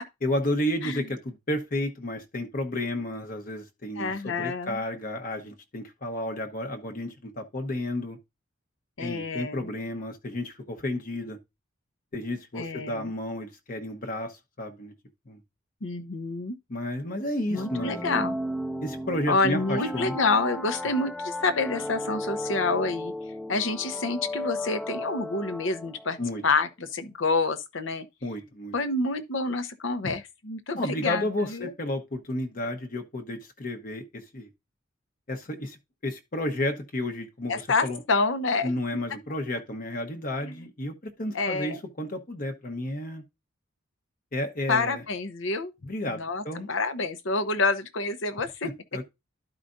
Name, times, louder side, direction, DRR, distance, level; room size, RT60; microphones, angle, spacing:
voice 1, 0.2-8.2 9.0-11.4 12.1-14.9 15.3-15.4 16.7-18.0 18.8-20.1 20.8-20.9 26.2-26.4 28.2-28.7 30.8-34.5 35.3-35.8 36.0-38.0 38.6-43.2 44.3-45.0 45.8-46.7 48.6-49.0, left 1 dB, 40° left, 1.0 m, -32 dB
voice 2, 4.0-4.8 9.0-9.7 12.5-13.1 15.8-16.6 17.5-18.4 19.3-23.1 23.5-26.2 26.4-28.0 28.7-31.7 37.5-38.7 40.4-40.6 41.3-41.8 44.7-45.7 46.1-48.7, left 3 dB, 65° left, 0.9 m, -28 dB
sound 1, 17.5-26.2, left 1 dB, 5° left, 0.5 m, -35 dB
12.5 x 4.9 x 2.6 m
head